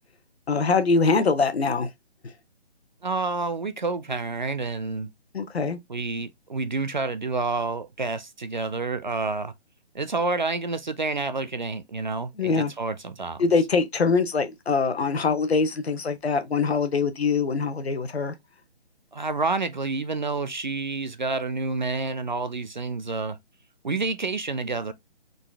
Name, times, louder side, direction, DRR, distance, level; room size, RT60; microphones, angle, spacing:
voice 1, 0.5-1.9 5.3-5.8 12.4-12.7 13.4-18.3, left 4 dB, 70° left, 1.0 m, -23 dB
voice 2, 3.0-5.1 5.9-9.5 9.9-13.5 19.1-23.4 23.8-24.9, right 3 dB, 45° right, 0.4 m, -29 dB
3.9 x 2.3 x 3.4 m
hypercardioid pair, 170°, 33 cm